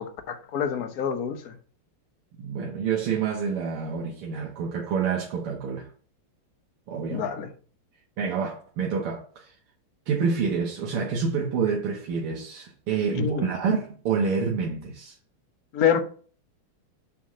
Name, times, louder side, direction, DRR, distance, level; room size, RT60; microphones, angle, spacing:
voice 1, 0.0-1.5 7.1-7.5 13.1-13.5 15.7-16.0, left 8 dB, 55° left, 1.1 m, -26 dB
voice 2, 2.4-5.9 6.9-7.3 8.2-9.5 10.1-15.2, right 5 dB, 80° right, 1.9 m, -28 dB
6.9 x 3.5 x 6.2 m
omnidirectional pair, 2.4 m